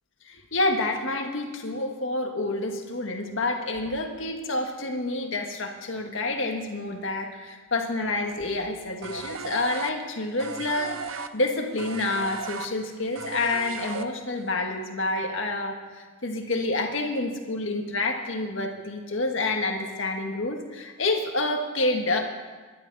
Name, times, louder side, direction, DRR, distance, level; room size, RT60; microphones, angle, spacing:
voice 1, 0.3-22.2, left 2 dB, 70° left, 3 dB, 1.8 m, -28 dB
sound 1, 9.0-14.5, right 5 dB, 85° right, 0.8 m, -36 dB
21.5 x 11.5 x 4.2 m, 1.4 s
head